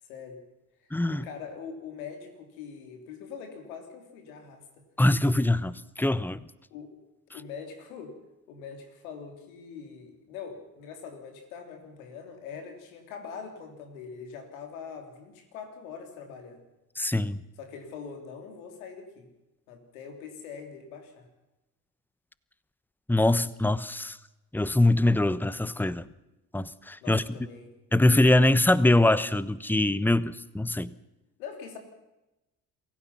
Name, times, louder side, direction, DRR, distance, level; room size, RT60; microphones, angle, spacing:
voice 1, 0.1-0.4 1.1-4.7 6.7-7.0 7.3-8.2 8.5-16.6 17.6-19.3 19.7-21.3 27.0-27.7 31.4-31.8, left 6 dB, 85° left, 5 dB, 3.3 m, -43 dB
voice 2, 0.9-1.2 5.0-6.4 17.0-17.4 23.1-24.2 24.5-26.0 26.5-27.2 27.9-30.9, left 1 dB, 5° left, 17 dB, 1.0 m, -23 dB
27.0 x 16.5 x 5.9 m, 0.97 s
hypercardioid pair, 50°, 41 cm